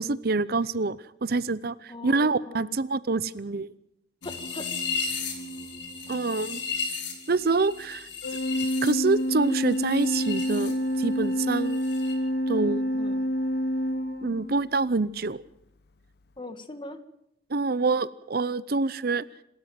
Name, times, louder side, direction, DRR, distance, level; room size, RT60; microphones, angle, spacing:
voice 1, 0.0-3.7 6.1-6.6 7.3-8.1 8.8-11.8 12.5-12.9 14.2-15.4 17.5-19.3, right 3 dB, 55° right, 18 dB, 0.7 m, -26 dB
voice 2, 1.9-2.8 4.2-4.7 13.0-13.3 16.4-17.0, left 2 dB, 25° left, 9 dB, 1.7 m, -40 dB
sound 1, 4.2-10.7 11.0-12.1, left 5 dB, 90° left, 4.5 m, -35 dB
Organ, 8.2-14.8, equal, 65° left, 0.8 m, -28 dB
Wind instrument woodwind instrument, 9.4-14.3, right 6 dB, 90° right, 3.5 m, -50 dB
27.0 x 13.0 x 7.6 m, 0.81 s
head